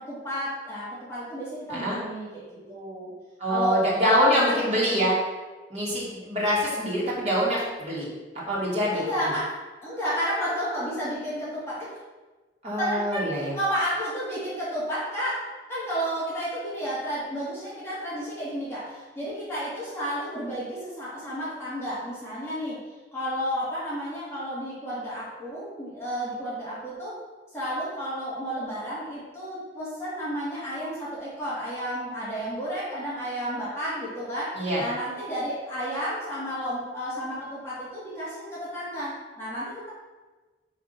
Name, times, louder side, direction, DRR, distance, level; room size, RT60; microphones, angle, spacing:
voice 1, 0.1-3.1 3.5-3.9 4.5-5.1 8.9-9.5 9.8-11.9 12.8-15.4 15.7-22.8 23.1-27.2 27.5-39.9, equal, 15° left, -9 dB, 2.4 m, -32 dB
voice 2, 3.4-5.1 5.7-8.1 8.5-9.0 12.6-13.5 34.6-34.8, equal, 35° right, -7 dB, 2.9 m, -24 dB
5.9 x 5.9 x 5.9 m, 1.2 s
head